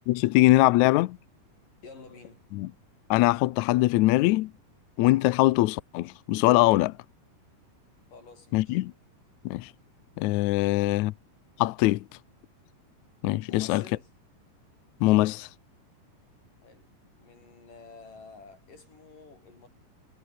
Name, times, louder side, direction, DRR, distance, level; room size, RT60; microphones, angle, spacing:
voice 1, 0.1-1.2 2.5-2.7 3.1-4.5 5.0-6.9 8.5-8.9 9.4-9.7 10.2-11.1 11.6-12.0 13.2-13.8 15.0-15.5, left 18 dB, 85° left, 1.7 m, -22 dB
voice 2, 1.8-2.4 8.1-8.8 13.5-14.1 16.6-16.9 17.2-19.7, left 4 dB, 65° left, 8.3 m, -50 dB
omnidirectional pair, 4.1 m